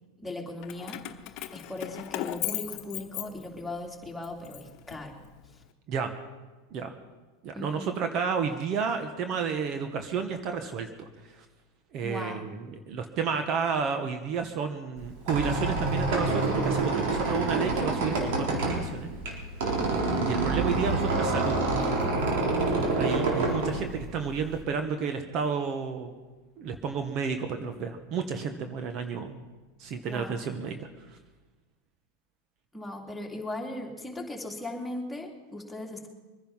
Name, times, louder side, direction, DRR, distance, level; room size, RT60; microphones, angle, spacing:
voice 1, 0.2-1.0 1.5-5.2 7.5-7.9 12.0-12.5 30.0-30.4 32.7-36.1, left 1 dB, 5° left, -1 dB, 3.1 m, -38 dB
Keys jangling, 0.6-3.8 4.2-5.5, left 15 dB, 50° left, 1.1 m, -37 dB
voice 2, 7.4-11.1 11.4-11.5 11.9-19.1 20.2-21.6 23.0-26.1 26.6-29.4 29.8-30.8, right 6 dB, 45° right, 7 dB, 1.5 m, -31 dB
Squeak, 15.0-24.6, right 3 dB, 70° right, 4.1 m, -27 dB
23.5 x 10.0 x 5.7 m, 1.2 s
hypercardioid pair, 115°, 0 cm